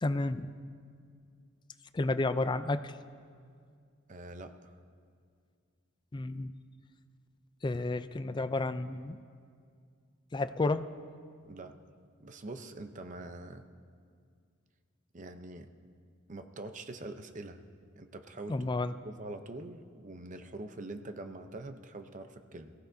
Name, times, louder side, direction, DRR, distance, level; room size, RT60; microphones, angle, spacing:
voice 1, 0.0-0.5 1.9-2.9 6.1-6.5 7.6-9.2 10.3-10.9 18.5-18.9, left 2 dB, 20° left, 11 dB, 0.4 m, -31 dB
voice 2, 4.1-4.8 11.5-11.7 12.2-13.7 15.1-15.7 16.3-17.6 18.0-18.7 19.0-22.7, right 2 dB, 40° right, 8 dB, 0.7 m, -44 dB
22.0 x 15.5 x 2.7 m, 2.2 s
head